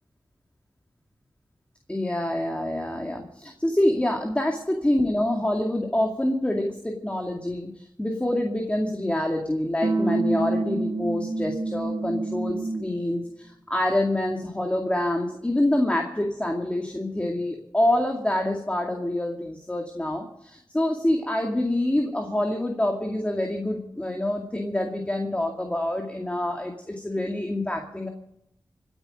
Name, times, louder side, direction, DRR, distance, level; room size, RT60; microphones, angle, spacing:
voice 1, 1.9-28.1, left 1 dB, 15° left, 2 dB, 2.3 m, -26 dB
sound 1, 9.8-13.0, right 2 dB, 45° right, 2.3 m, -27 dB
27.0 x 10.0 x 5.1 m, 0.79 s
wide cardioid pair, 95°, 8 cm